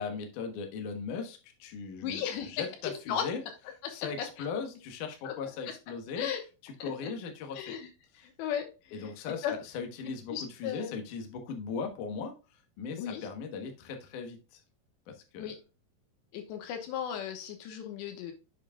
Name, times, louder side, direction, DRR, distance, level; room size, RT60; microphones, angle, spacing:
voice 1, 0.0-3.4 3.9-6.3 6.6-7.7 8.9-12.3 12.8-14.6 15.1-15.5, left 5 dB, 65° left, 4 dB, 2.2 m, -38 dB
voice 2, 2.0-3.3 3.8-4.5 5.2-5.3 5.7-5.8 6.2-6.4 6.8-7.1 7.5-9.6 10.3-11.0 13.0-13.3 15.4-15.6 16.3-18.3, left 9 dB, 85° left, 5 dB, 3.3 m, -36 dB
7.9 x 7.3 x 2.3 m, 0.31 s
omnidirectional pair, 5.1 m